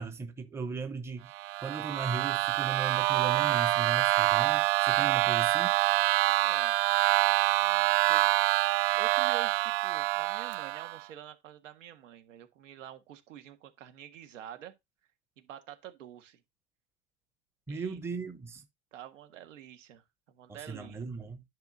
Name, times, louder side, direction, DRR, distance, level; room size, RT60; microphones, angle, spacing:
voice 1, 0.0-1.3 1.6-5.7 17.7-18.6 20.7-21.4, right 4 dB, 5° right, 0.8 m, -37 dB
sound 1, 1.3-11.0, right 18 dB, 50° right, 0.4 m, -26 dB
voice 2, 5.0-5.5 6.2-6.8 7.0-8.3 8.9-14.7 15.4-16.4 17.7-18.0 18.9-21.3, right 10 dB, 75° right, 1.7 m, -48 dB
10.5 x 5.8 x 2.7 m
hypercardioid pair, 125°, 38 cm